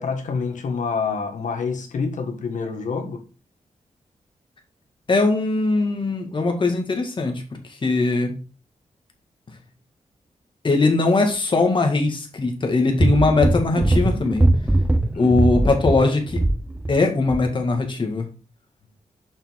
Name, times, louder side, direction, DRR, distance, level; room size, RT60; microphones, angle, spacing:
voice 1, 0.0-3.2 15.1-15.4, left 5 dB, 85° left, 1.7 m, -27 dB
voice 2, 5.1-7.4 7.7-8.3 10.6-14.5 15.2-16.4 16.9-18.3, left 3 dB, 40° left, 2.0 m, -20 dB
sound 1, 13.0-17.0 17.3-17.5, right 1 dB, 10° right, 0.5 m, -20 dB
7.1 x 5.6 x 3.6 m
wide cardioid pair, 105°, 13 cm